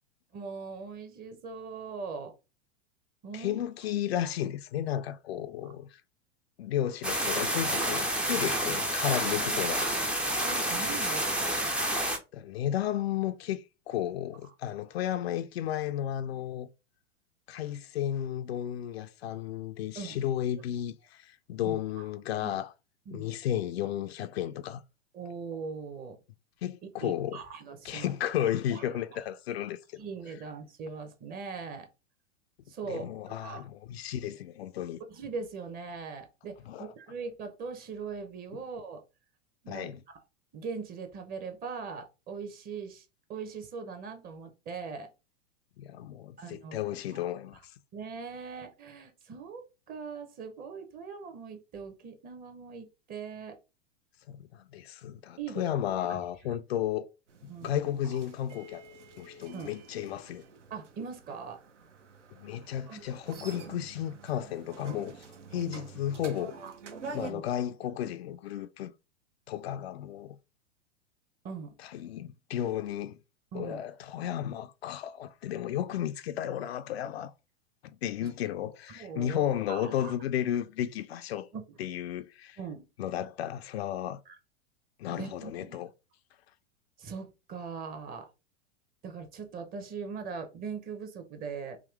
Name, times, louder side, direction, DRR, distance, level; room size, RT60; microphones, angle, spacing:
voice 1, 0.3-2.3 3.2-3.6 10.4-11.5 19.9-20.2 21.6-22.0 22.4-22.6 23.1-23.3 25.1-26.2 27.0-28.1 28.4-28.9 30.0-31.9 32.7-33.6 35.1-39.0 39.6-39.9 40.5-43.0 43.3-45.1 46.4-47.2 47.9-53.6 55.4-55.6 56.1-56.2 57.5-58.1 59.5-59.7 60.7-61.6 62.9-63.0 65.6-65.8 66.2-66.3 66.6-66.7 67.2-67.4 71.4-71.7 73.5-73.8 78.2-78.3 78.9-80.1 81.5-81.6 82.6-82.8 84.3-84.4 85.1-85.8 87.0-88.3 89.0-91.8, right 5 dB, 25° right, 0.8 m, -41 dB
voice 2, 3.3-6.0 6.6-9.9 12.3-16.7 17.5-22.7 23.1-24.8 26.6-27.4 27.8-29.8 32.9-35.0 36.7-36.9 39.7-40.0 45.8-47.7 54.3-57.1 57.4-58.8 59.2-60.4 62.3-65.1 65.5-66.6 67.1-68.9 69.5-70.4 71.8-73.2 73.5-77.3 77.8-81.5 81.8-82.6 83.0-84.2 85.0-85.9, left 11 dB, 60° left, 0.5 m, -33 dB
sound 1, 7.0-12.2, right 1 dB, 5° right, 0.4 m, -29 dB
sound 2, 57.3-67.3, right 4 dB, 75° right, 0.9 m, -47 dB
3.7 x 2.7 x 3.3 m
figure-of-eight pair, 95°, 36 cm